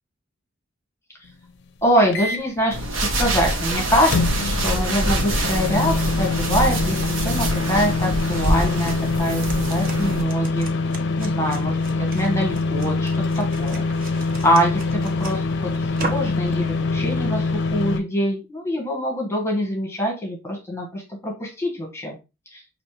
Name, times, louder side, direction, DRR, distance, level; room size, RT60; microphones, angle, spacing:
voice 1, 1.8-2.8 3.0-9.4 9.7-10.7 11.2-13.9 14.4-22.2 22.5-22.6, equal, 15° left, 0 dB, 1.1 m, -24 dB
sound 1, 2.1-2.6 4.1-18.0, left 3 dB, 60° left, 0.5 m, -24 dB
sound 2, 2.7-10.2, right 1 dB, 70° right, 1.0 m, -25 dB
sound 3, 8.1-16.4, right 3 dB, 45° right, 0.8 m, -39 dB
5.3 x 2.6 x 3.1 m, 0.27 s
head